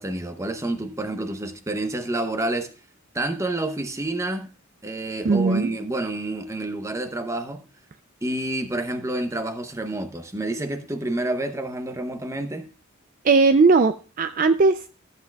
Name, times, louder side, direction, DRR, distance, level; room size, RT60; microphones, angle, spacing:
voice 1, 0.0-2.7 3.1-4.5 4.8-7.6 8.2-12.7, right 2 dB, 15° right, 0.7 m, -28 dB
voice 2, 5.2-5.7 13.2-14.9, right 4 dB, 40° right, 0.4 m, -18 dB
14.0 x 8.1 x 2.3 m
head